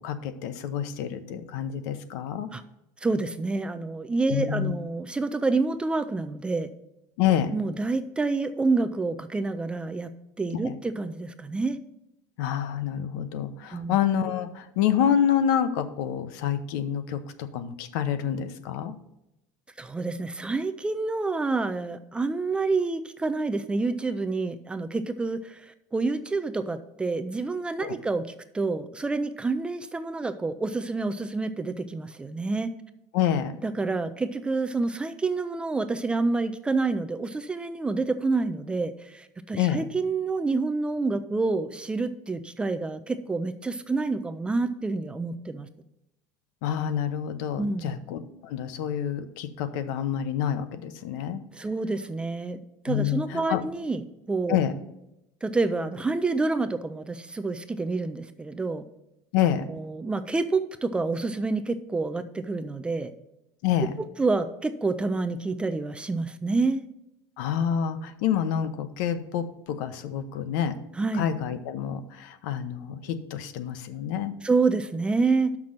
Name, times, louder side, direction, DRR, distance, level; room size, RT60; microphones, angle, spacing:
voice 1, 0.0-2.5 4.3-4.7 7.2-7.5 10.6-10.7 12.4-18.9 27.8-28.0 33.1-33.6 39.5-39.8 46.6-51.4 52.9-53.6 54.5-54.7 59.3-59.6 63.6-63.9 67.4-70.8 71.1-74.3, left 9 dB, 75° left, 11 dB, 0.8 m, -27 dB
voice 2, 3.0-6.7 7.5-10.1 10.4-11.8 13.7-14.0 19.8-28.3 28.5-32.7 33.6-45.7 47.6-47.9 51.5-54.0 54.3-54.6 55.4-58.8 59.7-63.1 64.2-66.9 71.0-71.2 74.4-75.5, right 3 dB, 10° right, 10 dB, 0.3 m, -28 dB
6.3 x 6.0 x 7.2 m, 0.86 s
cardioid pair, 160°, 10 cm